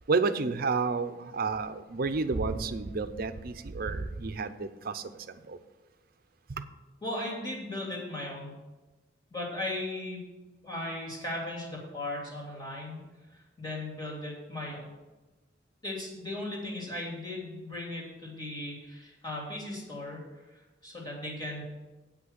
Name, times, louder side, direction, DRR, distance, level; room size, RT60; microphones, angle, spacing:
voice 1, 0.1-5.0 5.5-5.6 6.6-6.7, right 4 dB, 50° right, 11 dB, 0.6 m, -30 dB
voice 2, 7.0-8.6 9.3-10.2 10.6-13.0 13.3-14.9 15.8-21.8, left 1 dB, 20° left, -3 dB, 2.9 m, -37 dB
8.3 x 6.0 x 8.0 m, 1.1 s
head